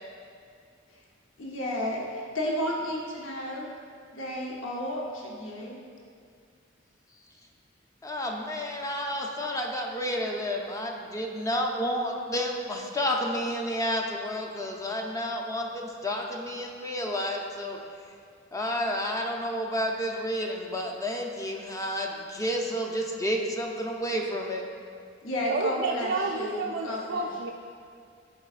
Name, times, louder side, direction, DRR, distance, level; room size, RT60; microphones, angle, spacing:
voice 1, 1.4-3.7 4.1-5.8 25.2-27.3, left 1 dB, 85° left, -2 dB, 0.8 m, -32 dB
voice 2, 8.0-17.8 18.5-24.6, equal, 15° left, 1 dB, 0.5 m, -30 dB
voice 3, 25.5-27.5, right 3 dB, 60° right, -1 dB, 0.4 m, -30 dB
11.0 x 4.6 x 2.4 m, 2.3 s
head